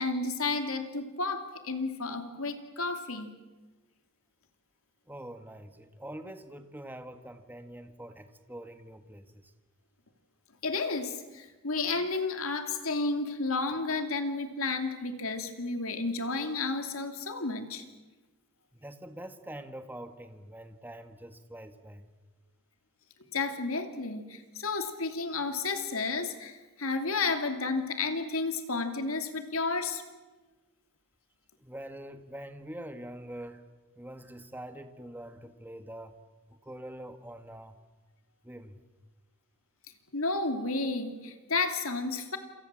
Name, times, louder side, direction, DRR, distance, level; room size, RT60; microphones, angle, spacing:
voice 1, 0.0-3.3 10.6-17.8 23.3-30.0 40.1-42.4, left 3 dB, 70° left, 7 dB, 2.8 m, -32 dB
voice 2, 5.1-9.5 18.7-22.1 31.6-33.6 34.0-36.2 36.5-37.8 38.4-38.8, right 1 dB, 10° right, 8 dB, 1.6 m, -44 dB
28.0 x 28.0 x 7.6 m, 1.2 s
head